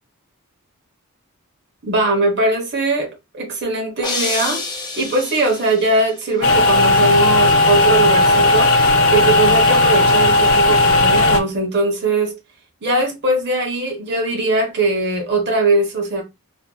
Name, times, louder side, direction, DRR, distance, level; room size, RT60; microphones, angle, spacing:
voice 1, 1.8-3.1 3.3-4.6 5.0-8.7 9.1-12.3 12.8-16.2, right 2 dB, 55° right, 1.0 m, -20 dB
sound 1, 4.0-6.1, left 3 dB, 20° left, 0.5 m, -27 dB
sound 2, 6.4-11.4, left 2 dB, 65° left, 0.5 m, -14 dB
2.7 x 2.6 x 2.2 m
head